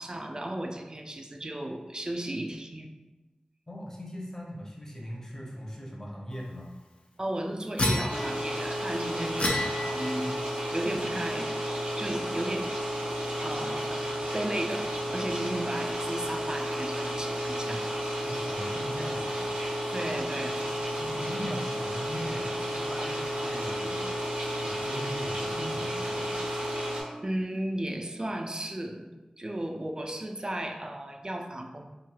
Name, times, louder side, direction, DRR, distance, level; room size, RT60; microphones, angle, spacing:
voice 1, 0.0-2.9 7.2-10.4 10.7-12.8 13.4-14.0 14.3-17.9 19.9-20.7 27.2-29.1 29.4-31.9, right 1 dB, 30° right, 4 dB, 0.3 m, -35 dB
voice 2, 3.7-6.7 18.2-19.4 21.0-24.2 24.6-26.5, equal, 20° left, -3 dB, 0.7 m, -39 dB
sound 1, 7.8-8.6 9.4-10.3, left 1 dB, 55° left, 0.4 m, -29 dB
sound 2, 8.1-27.0, equal, 80° right, 0.7 m, -32 dB
3.1 x 2.7 x 2.3 m, 1.1 s
wide cardioid pair, 45°, 2 cm